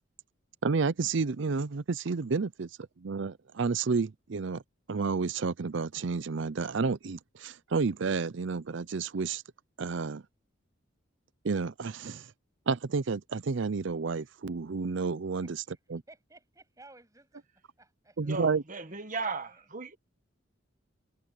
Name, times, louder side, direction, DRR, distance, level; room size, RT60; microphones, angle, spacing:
voice 1, 0.6-2.7 3.0-4.6 4.9-9.4 9.8-10.2 11.4-12.2 12.7-15.6 15.9-16.0 18.2-18.6, right 4 dB, 60° right, 0.5 m, -30 dB
voice 2, 15.4-15.8 16.1-17.5 17.8-19.7, right 2 dB, 15° right, 8.0 m, -57 dB
voice 3, 18.2-20.0, right 3 dB, 40° right, 1.4 m, -36 dB
head